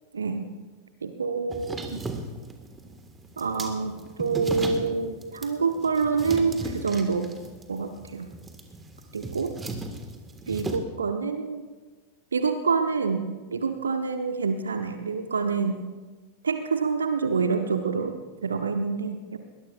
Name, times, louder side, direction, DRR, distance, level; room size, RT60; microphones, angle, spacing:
voice 1, 0.1-0.5 1.0-2.0 3.4-7.4 7.7-8.3 9.1-9.6 10.5-11.6 12.3-15.9 16.4-19.4, right 5 dB, 70° right, 8 dB, 0.9 m, -27 dB
sound 1, 1.5-10.8, right 2 dB, 15° right, 1.7 m, -37 dB
21.5 x 20.0 x 2.5 m, 1.3 s
figure-of-eight pair, 90°, 0 cm